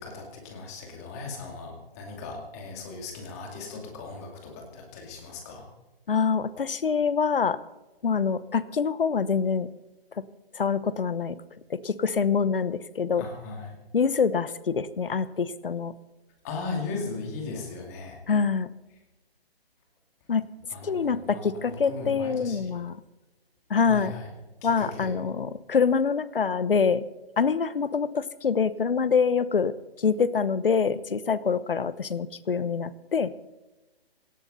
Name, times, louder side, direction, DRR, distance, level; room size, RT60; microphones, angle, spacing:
voice 1, 0.0-5.7 13.2-13.7 16.4-18.2 20.7-22.7 23.9-24.3 24.6-25.1, left 4 dB, 15° left, 1 dB, 2.4 m, -37 dB
voice 2, 6.1-7.6 8.0-9.7 10.5-11.4 11.7-13.2 13.9-15.9 18.3-18.7 20.3-20.5 20.8-23.0 23.7-24.1 24.6-27.0 27.4-33.3, left 6 dB, 60° left, 16 dB, 1.0 m, -25 dB
18.0 x 15.5 x 4.1 m, 1.1 s
hypercardioid pair, 170°, 31 cm